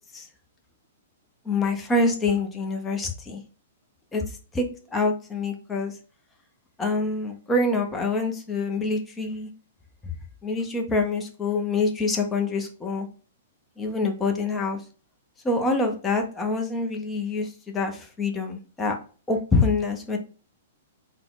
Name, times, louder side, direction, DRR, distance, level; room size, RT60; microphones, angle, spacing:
voice 1, 1.5-3.4 4.1-4.3 4.5-5.9 6.8-9.5 10.4-13.1 13.8-14.8 15.4-19.0 19.3-20.2, left 3 dB, 15° left, 3 dB, 0.9 m, -26 dB
4.0 x 2.3 x 3.9 m, 0.37 s
hypercardioid pair, 135°, 0 cm